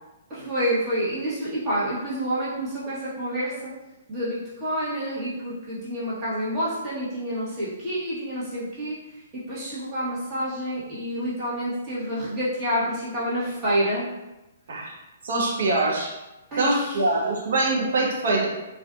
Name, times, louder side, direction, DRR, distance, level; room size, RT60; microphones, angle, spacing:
voice 1, 0.3-3.7 4.1-9.0 9.3-14.1 16.5-17.0, equal, 30° right, -9 dB, 1.1 m, -28 dB
voice 2, 15.2-16.1 16.6-18.5, right 2 dB, 70° right, -2 dB, 0.7 m, -23 dB
2.5 x 2.3 x 2.3 m, 1.0 s
hypercardioid pair, 135°, 0 cm